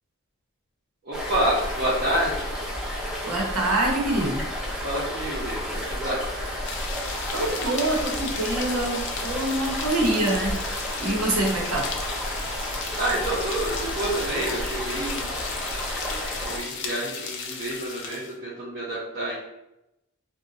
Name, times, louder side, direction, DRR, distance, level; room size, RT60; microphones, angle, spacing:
voice 1, 1.0-2.5 4.8-6.2 13.0-15.3 16.4-19.3, right 1 dB, 45° right, -8 dB, 0.7 m, -28 dB
sound 1, 1.1-16.6, equal, 5° right, 0.4 m, -32 dB
voice 2, 3.2-4.4 7.3-10.6 11.0-11.9, right 1 dB, 90° right, -2 dB, 0.9 m, -25 dB
sound 2, 6.6-18.3, left 5 dB, 55° left, 0.4 m, -35 dB
2.6 x 2.2 x 3.9 m, 0.90 s
head